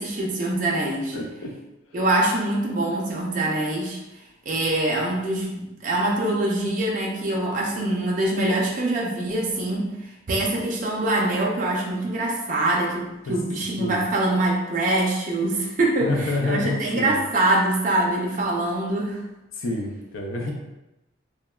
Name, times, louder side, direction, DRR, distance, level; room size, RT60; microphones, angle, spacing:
voice 1, 0.0-1.2 1.9-4.0 4.5-19.2, right 2 dB, 40° right, -2 dB, 0.4 m, -24 dB
voice 2, 1.1-1.5 13.3-13.4 13.8-14.0 16.0-17.2 19.6-20.5, left 2 dB, 80° left, 2 dB, 0.4 m, -28 dB
3.0 x 2.1 x 2.2 m, 0.97 s
head